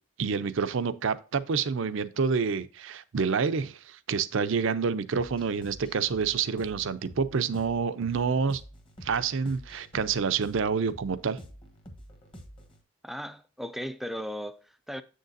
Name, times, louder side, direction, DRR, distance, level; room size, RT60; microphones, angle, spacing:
voice 1, 0.2-8.6 9.0-11.4, right 5 dB, 60° right, 0.5 m, -28 dB
sound 1, 5.1-12.8, equal, 25° left, 1.1 m, -48 dB
voice 2, 13.0-15.0, equal, ahead, 0.3 m, -37 dB
7.6 x 6.5 x 2.6 m
head